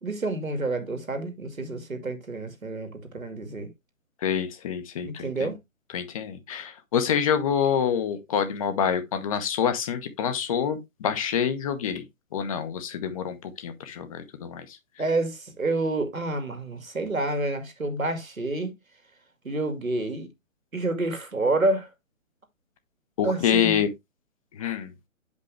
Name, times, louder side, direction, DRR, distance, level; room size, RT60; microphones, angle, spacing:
voice 1, 0.0-3.7 5.0-5.6 15.0-18.8 19.4-20.3 20.7-21.9 23.2-23.8, right 2 dB, 90° right, 2.1 m, -28 dB
voice 2, 4.2-5.5 5.9-12.1 12.3-14.8 23.2-23.9 24.5-24.9, left 8 dB, 25° left, 0.8 m, -27 dB
7.9 x 5.3 x 3.2 m
figure-of-eight pair, 135°, 40 cm